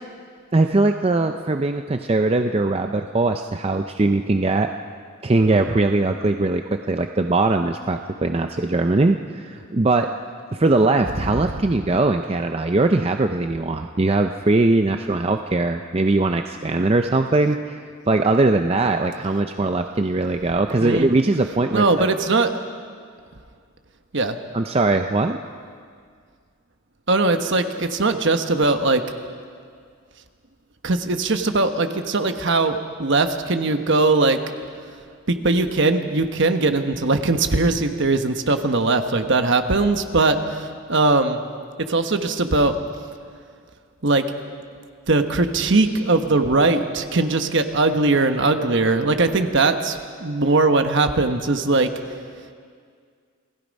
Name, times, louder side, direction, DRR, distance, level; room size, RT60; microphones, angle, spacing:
voice 1, 0.5-4.7 5.2-10.1 10.5-17.8 18.1-22.1 24.5-25.4, right 2 dB, 25° right, 6 dB, 0.5 m, -20 dB
voice 2, 20.8-21.1 21.7-22.5 24.1-24.4 27.1-29.0 30.8-34.4 35.3-41.4 41.8-42.8 44.0-44.3 45.1-51.9, right 3 dB, 55° right, 7 dB, 1.2 m, -20 dB
28.5 x 18.0 x 5.3 m, 2.1 s
head